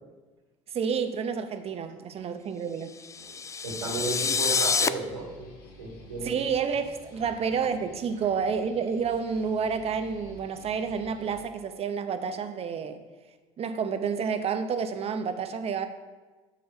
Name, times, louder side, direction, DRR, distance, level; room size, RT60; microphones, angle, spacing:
voice 1, 0.7-2.9 6.2-13.0 13.6-15.9, right 6 dB, 40° right, 9 dB, 0.8 m, -29 dB
sound 1, 3.0-4.9, left 5 dB, 20° left, 0.3 m, -27 dB
voice 2, 3.6-5.5 5.8-6.3, right 3 dB, 90° right, 0 dB, 1.6 m, -34 dB
sound 2, 5.0-11.4, left 2 dB, 65° left, 1.7 m, -51 dB
7.6 x 4.3 x 5.3 m, 1.3 s
hypercardioid pair, 70°, 15 cm